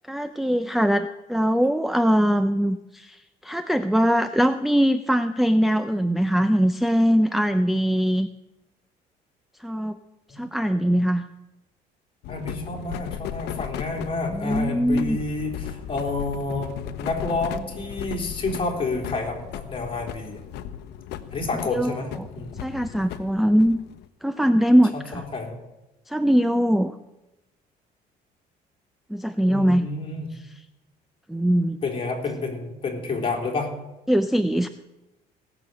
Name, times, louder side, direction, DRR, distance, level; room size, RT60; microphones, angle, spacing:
voice 1, 0.1-8.3 9.6-10.0 10.3-11.2 14.3-15.2 21.7-22.3 22.6-23.8 24.2-25.2 26.1-27.0 29.1-29.9 31.3-31.8 34.1-34.7, equal, ahead, 10 dB, 0.5 m, -21 dB
sound 1, 12.2-24.1, left 10 dB, 80° left, 0.9 m, -36 dB
voice 2, 12.3-20.4 21.3-22.6 24.9-25.6 29.5-30.3 31.8-33.7, left 3 dB, 30° left, 1 dB, 3.6 m, -29 dB
17.5 x 6.9 x 7.8 m, 0.97 s
cardioid pair, 110°, 17 cm